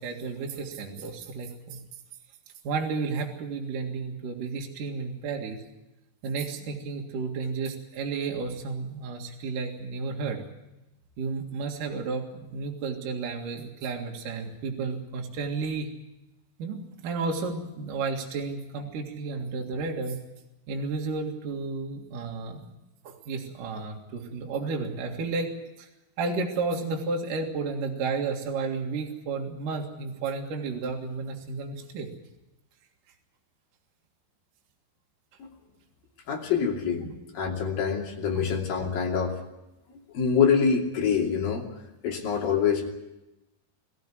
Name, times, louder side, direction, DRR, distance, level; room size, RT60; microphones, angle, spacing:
voice 1, 0.0-1.8 2.6-5.6 6.2-10.4 11.2-15.9 16.6-20.2 20.7-22.6 23.0-25.5 25.8-25.9 26.2-32.1 37.5-37.6 38.3-38.4, right 4 dB, 55° right, 0 dB, 3.1 m, -32 dB
voice 2, 36.3-37.0 37.3-39.4 40.1-41.7 42.0-43.0, left 6 dB, 55° left, 0 dB, 4.3 m, -25 dB
22.0 x 15.0 x 10.0 m, 0.96 s
omnidirectional pair, 5.2 m